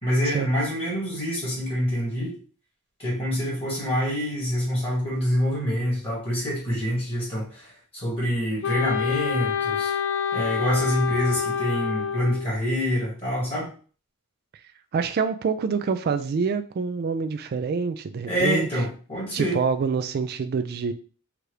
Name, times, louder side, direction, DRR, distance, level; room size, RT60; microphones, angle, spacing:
voice 1, 0.0-2.3 3.0-9.9 10.3-13.7 18.2-19.6, equal, 25° left, -5 dB, 2.0 m, -26 dB
Wind instrument woodwind instrument, 8.6-12.6, left 7 dB, 60° left, 0.4 m, -27 dB
voice 2, 14.9-18.7 19.3-20.9, right 5 dB, 45° right, 10 dB, 0.3 m, -26 dB
4.5 x 2.5 x 3.2 m, 0.40 s
head